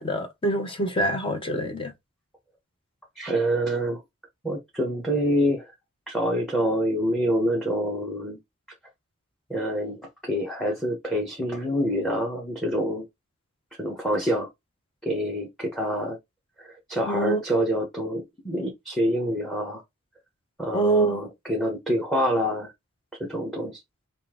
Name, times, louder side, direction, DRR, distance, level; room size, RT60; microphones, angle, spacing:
voice 1, 0.0-1.9 17.1-17.4 20.7-21.2, right 2 dB, 25° left, 0.8 m, -25 dB
voice 2, 3.2-4.0 4.4-5.7 6.1-8.4 9.5-13.0 13.8-14.5 15.0-16.2 16.6-19.8 20.6-22.7 23.2-23.8, equal, ahead, 1.1 m, -26 dB
5.4 x 2.6 x 3.7 m
head